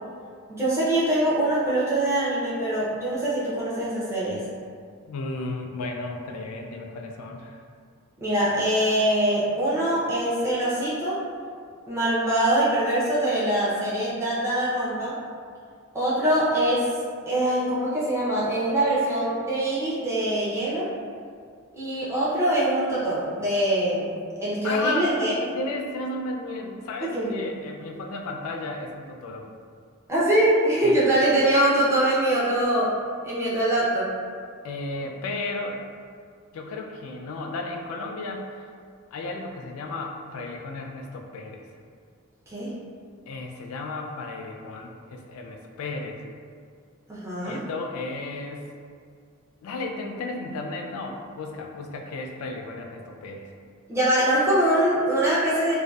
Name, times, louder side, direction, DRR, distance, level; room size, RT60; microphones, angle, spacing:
voice 1, 0.5-4.5 8.2-11.2 11.9-15.2 15.9-16.9 17.3-20.9 21.7-24.1 24.4-25.3 27.1-27.5 30.1-33.0 33.2-34.1 42.5-42.7 47.1-47.6 53.9-55.8, right 1 dB, 15° right, -9 dB, 0.5 m, -23 dB
voice 2, 5.0-7.7 24.6-29.5 30.8-31.2 34.6-35.8 36.5-38.7 39.1-41.6 43.3-46.2 47.4-48.7 49.6-53.5, left 2 dB, 80° left, 2 dB, 0.3 m, -34 dB
2.5 x 2.2 x 2.2 m, 2.1 s
head